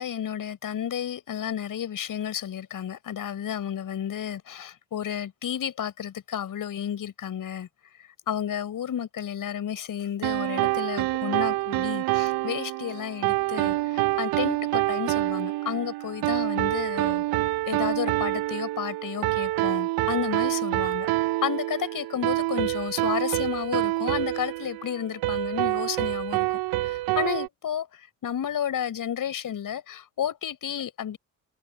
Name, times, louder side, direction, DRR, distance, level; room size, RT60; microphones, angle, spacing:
voice 1, 0.0-7.7 8.3-17.2 17.7-21.1 21.4-26.5 26.8-27.9 28.2-31.2, left 9 dB, 50° left, 7.0 m, -32 dB
sound 1, 10.2-27.5, right 18 dB, 60° right, 1.2 m, -27 dB
open air
figure-of-eight pair, 50°, 42 cm